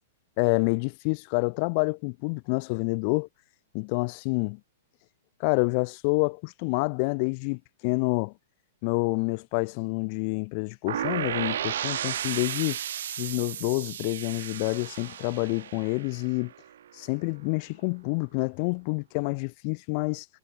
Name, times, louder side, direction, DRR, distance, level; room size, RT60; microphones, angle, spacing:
voice 1, 0.4-3.3 3.7-4.6 5.4-8.3 8.8-12.8 13.2-16.5 16.9-20.3, left 34 dB, 45° left, 0.8 m, -28 dB
sound 1, 10.9-16.7, right 10 dB, 70° right, 0.9 m, -34 dB
hypercardioid pair, 120°, 0 cm